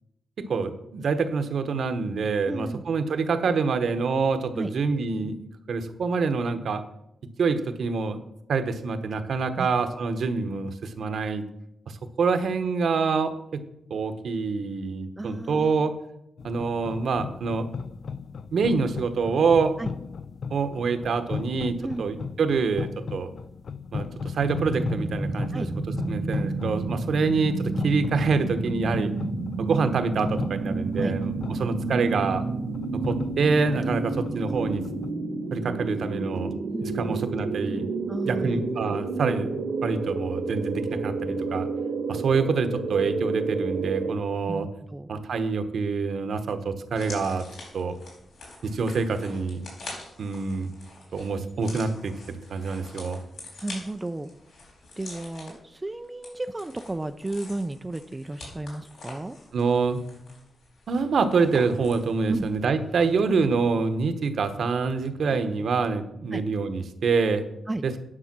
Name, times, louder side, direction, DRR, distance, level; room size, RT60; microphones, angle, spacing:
voice 1, 0.5-6.8 7.4-11.4 11.9-13.6 13.9-15.9 16.4-17.7 18.5-19.7 20.5-23.3 23.9-25.6 26.1-29.1 29.6-32.4 33.1-34.8 35.5-36.5 36.8-37.9 38.2-39.5 39.8-41.7 42.1-44.7 45.1-47.4 47.7-48.0 48.6-49.6 50.2-50.7 51.1-53.2 59.5-60.0 60.9-67.4 67.8-67.9, right 4 dB, 60° right, 9 dB, 1.0 m, -26 dB
voice 2, 2.5-2.8 4.5-4.7 9.6-9.7 15.2-15.8 19.8-19.9 21.8-22.0 25.5-25.7 31.0-31.1 36.7-37.2 38.1-38.6 44.5-45.1 53.6-54.3 55.0-59.4 62.3-62.5 66.3-66.4 67.7-67.8, right 2 dB, 15° right, 8 dB, 0.4 m, -33 dB
sound 1, 16.4-35.1, left 5 dB, 50° left, 0.4 m, -37 dB
sound 2, 24.4-44.1, right 3 dB, 85° right, 1.6 m, -30 dB
sound 3, 46.9-62.6 62.9-63.0, left 2 dB, 75° left, 4.2 m, -45 dB
10.0 x 6.4 x 6.0 m, 0.80 s
wide cardioid pair, 145°, 0 cm